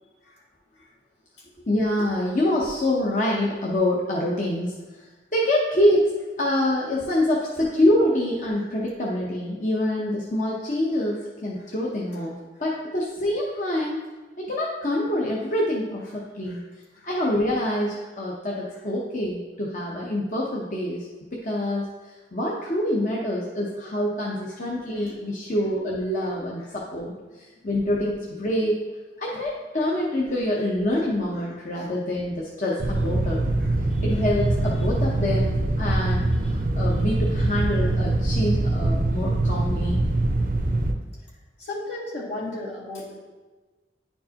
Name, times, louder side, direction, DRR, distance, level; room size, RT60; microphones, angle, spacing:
voice 1, 1.7-4.8 5.3-6.1 6.4-14.0 14.4-16.7 17.0-21.9 22.3-28.8 29.2-33.4 34.0-40.1, left 1 dB, 45° left, -4 dB, 0.8 m, -26 dB
voice 2, 31.4-31.9 33.6-34.2 36.4-36.5 41.2-41.3 41.6-43.2, left 2 dB, 75° left, -5 dB, 2.1 m, -37 dB
sound 1, 32.8-40.9, right 2 dB, 50° right, 0.5 m, -23 dB
10.5 x 4.5 x 2.9 m, 1.3 s
head